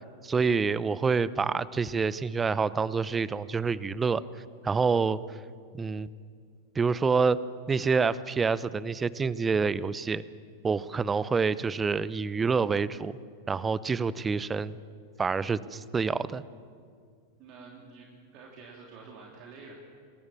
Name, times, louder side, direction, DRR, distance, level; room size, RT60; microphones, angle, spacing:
voice 1, 0.2-4.2 4.6-5.2 5.7-6.1 6.7-7.4 7.7-10.2 10.6-13.1 13.5-14.7 15.2-16.4, right 5 dB, 15° right, 18 dB, 0.8 m, -27 dB
voice 2, 17.4-19.7, right 4 dB, 40° right, -1 dB, 3.2 m, -48 dB
27.0 x 20.5 x 7.3 m, 2.1 s
figure-of-eight pair, 90°, 0 cm